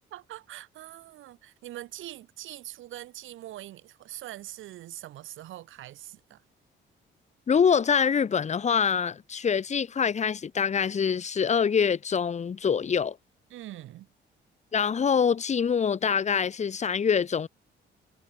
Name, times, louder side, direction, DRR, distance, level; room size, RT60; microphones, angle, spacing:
voice 1, 0.1-6.4 13.5-14.1, right 14 dB, 85° right, 6.0 m, -43 dB
voice 2, 7.5-13.2 14.7-17.5, left 6 dB, 35° left, 2.1 m, -25 dB
cardioid pair, 125°, 20 cm